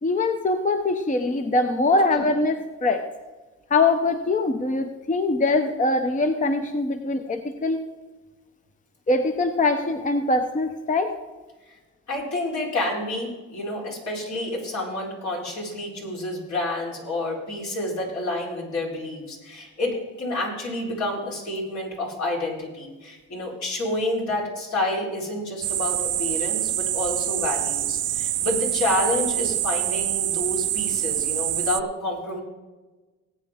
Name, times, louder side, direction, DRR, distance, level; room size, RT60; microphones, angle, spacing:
voice 1, 0.0-3.0 3.7-7.8 9.1-11.1, left 2 dB, 25° left, 7 dB, 0.8 m, -23 dB
voice 2, 12.1-32.4, left 1 dB, 65° left, -3 dB, 4.4 m, -29 dB
sound 1, 25.6-31.8, right 12 dB, 55° right, 0.5 m, -26 dB
18.5 x 9.0 x 3.7 m, 1.3 s
cardioid pair, 90°, 30 cm